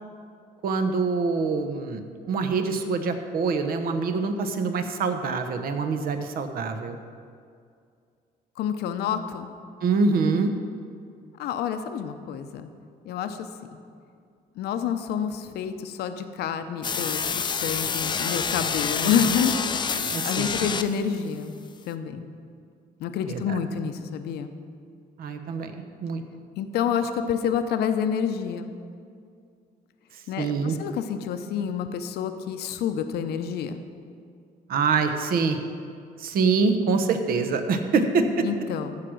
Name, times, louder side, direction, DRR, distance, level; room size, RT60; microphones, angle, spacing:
voice 1, 0.6-7.0 9.8-10.5 20.1-20.5 23.3-23.6 25.2-25.7 26.0-26.2 30.4-30.7 34.7-35.6 36.2-38.4, right 4 dB, 60° right, 7 dB, 1.0 m, -25 dB
voice 2, 8.6-9.5 11.4-12.7 13.0-13.8 14.6-21.5 21.8-22.3 23.0-24.5 26.6-28.7 30.3-33.9 38.4-39.0, left 7 dB, 70° left, 8 dB, 0.7 m, -28 dB
sound 1, 16.8-21.1, left 6 dB, 25° left, 0.5 m, -27 dB
14.5 x 4.9 x 6.3 m, 2.3 s
cardioid pair, 110°, 17 cm